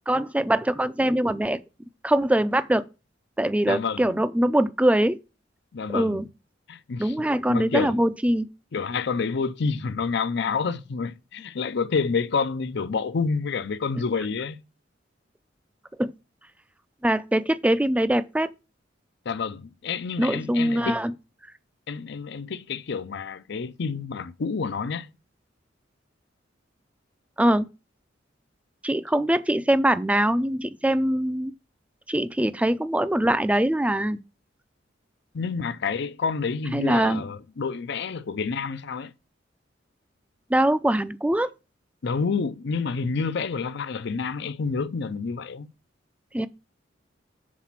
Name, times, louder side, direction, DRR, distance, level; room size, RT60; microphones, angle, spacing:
voice 1, 0.1-1.6 2.0-2.8 3.4-5.2 5.9-6.2 7.0-8.5 16.0-16.1 17.0-18.5 20.2-21.1 27.4-27.6 28.8-31.5 32.1-34.2 36.7-37.3 40.5-41.5 46.3-46.5, right 1 dB, 5° right, 0.4 m, -22 dB
voice 2, 3.7-4.1 5.7-6.2 6.7-7.1 7.5-8.0 8.7-14.6 19.3-21.0 21.9-25.1 35.3-39.1 42.0-45.7, left 5 dB, 65° left, 0.5 m, -28 dB
7.4 x 4.1 x 6.0 m
head